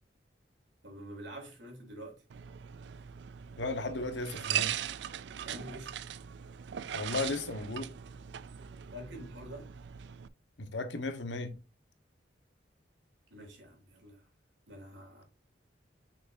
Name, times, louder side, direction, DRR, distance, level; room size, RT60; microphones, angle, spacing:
voice 1, 0.8-2.2 5.4-5.9 8.9-9.7 13.3-14.2 14.7-15.2, equal, 90° right, 2.9 m, -46 dB
sound 1, 2.3-10.3, right 10 dB, 70° right, 0.4 m, -39 dB
voice 2, 3.6-4.8 6.9-7.9 10.6-11.5, left 2 dB, 85° left, 1.2 m, -35 dB
6.2 x 6.2 x 2.6 m
head